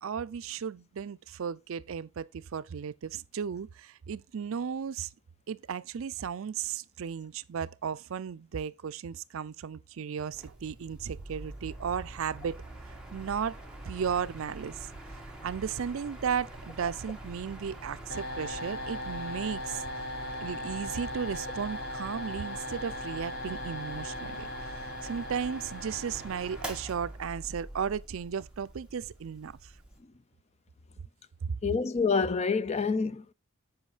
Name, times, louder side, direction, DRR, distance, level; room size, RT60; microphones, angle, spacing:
voice 1, 0.0-5.1 5.5-12.6 13.1-13.6 13.9-14.9 15.1-19.8 20.4-29.7 31.4-31.5, right 7 dB, 65° right, 0.4 m, -35 dB
Mechanical fan, 10.3-30.0, right 1 dB, 5° right, 1.6 m, -45 dB
sound 1, 18.1-27.0, left 1 dB, 45° left, 1.3 m, -39 dB
voice 2, 31.6-33.3, left 5 dB, 30° left, 0.4 m, -27 dB
7.9 x 5.1 x 4.9 m
head